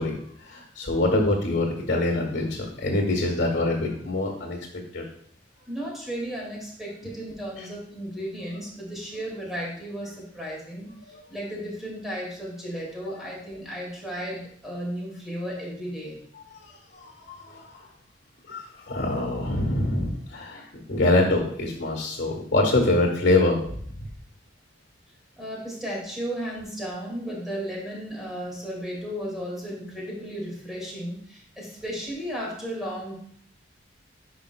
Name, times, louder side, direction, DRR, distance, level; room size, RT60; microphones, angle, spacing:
voice 1, 0.0-5.1 7.6-7.7 13.1-13.2 16.5-17.9 18.5-23.6 24.0-24.1, left 2 dB, 70° left, 1 dB, 1.3 m, -25 dB
voice 2, 5.7-10.9 11.3-16.2 25.4-33.2, equal, ahead, -4 dB, 2.1 m, -34 dB
10.0 x 4.9 x 2.2 m, 0.63 s
head